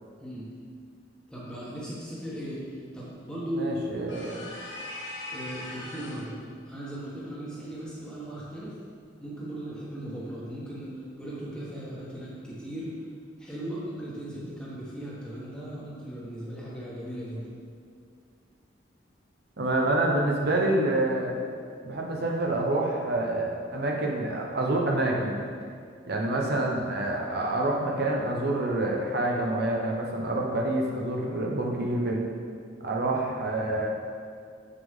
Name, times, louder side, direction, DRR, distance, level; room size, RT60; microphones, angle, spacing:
voice 1, 1.3-2.7 2.9-3.7 5.3-6.4 6.6-8.7 9.2-12.9 13.4-17.5, right 1 dB, 5° left, -9 dB, 1.3 m, -37 dB
voice 2, 3.6-4.4 19.6-21.4 21.8-25.4 26.1-32.2 32.8-33.9, right 2 dB, 60° right, -1 dB, 0.9 m, -27 dB
sound 1, 4.1-6.3, left 1 dB, 85° left, 1.8 m, -40 dB
7.1 x 6.6 x 3.7 m, 2.2 s
head